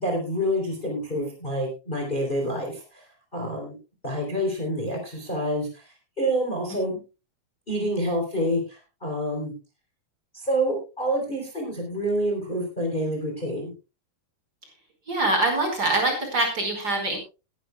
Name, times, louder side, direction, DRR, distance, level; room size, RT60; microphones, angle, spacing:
voice 1, 0.0-3.0 3.3-3.8 4.0-5.8 6.2-7.0 7.7-9.5 10.3-13.7, equal, 15° left, 1 dB, 3.7 m, -27 dB
voice 2, 15.1-17.2, right 2 dB, 30° right, 2 dB, 5.3 m, -24 dB
21.0 x 11.0 x 2.3 m, 0.30 s
omnidirectional pair, 3.3 m